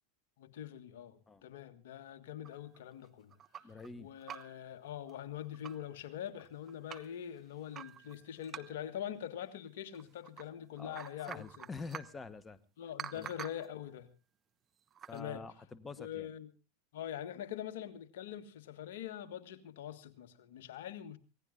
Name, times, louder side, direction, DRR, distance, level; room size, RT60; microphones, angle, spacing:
voice 1, 0.4-3.3 3.7-11.7 12.8-14.1 15.1-15.4 16.0-16.5 16.9-21.2, left 10 dB, 70° left, 10 dB, 1.6 m, -44 dB
sound 1, 2.4-3.9 4.2-4.7 5.1-5.2 5.4-5.9 6.4-7.1 7.7-9.0 9.9-10.5 10.8-12.2 13.0-13.7 14.9-15.2, right 8 dB, 30° right, 1.0 m, -48 dB
voice 2, 3.6-4.1 10.8-11.0 11.3-12.6 13.1-13.3 15.1-16.3, left 4 dB, 20° left, 14 dB, 1.1 m, -46 dB
25.5 x 17.5 x 2.5 m, 0.31 s
hypercardioid pair, 90°, 0 cm